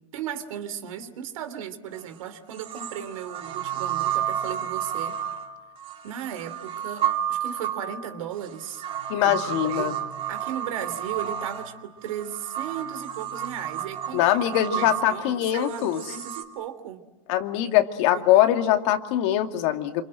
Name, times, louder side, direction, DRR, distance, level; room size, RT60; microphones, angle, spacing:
voice 1, 0.1-5.2 6.0-8.8 9.2-10.0 10.3-17.0 18.1-18.5, right 9 dB, 75° right, 10 dB, 3.3 m, -36 dB
sound 1, 1.9-2.0 2.6-16.4, right 10 dB, 30° right, 3.0 m, -31 dB
voice 2, 9.1-9.9 14.1-16.0 17.3-20.0, left 12 dB, 55° left, 6 dB, 2.3 m, -22 dB
27.5 x 26.5 x 7.8 m, 1.1 s
supercardioid pair, 140°, 17 cm